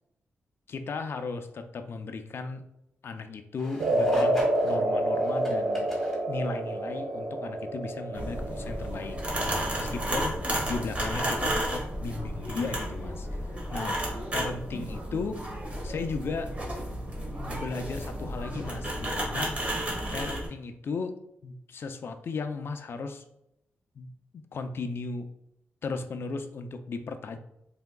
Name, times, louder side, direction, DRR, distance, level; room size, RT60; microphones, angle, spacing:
voice 1, 0.7-2.6 3.0-5.9 6.3-9.2 9.8-10.3 10.7-13.3 13.7-14.0 14.3-15.4 15.8-16.5 17.4-19.6 20.1-21.2 21.4-23.2 24.0-25.3 25.8-27.4, left 4 dB, 55° left, 8 dB, 0.4 m, -35 dB
sound 1, 3.6-6.2 8.3-8.5 9.8-9.9, equal, 5° left, 1.4 m, -42 dB
sound 2, 3.8-12.1, right 1 dB, 65° right, 0.5 m, -29 dB
sound 3, 8.1-20.5, right 1 dB, 30° right, 1.4 m, -32 dB
4.6 x 3.4 x 2.2 m, 0.82 s
cardioid pair, 100°, 5 cm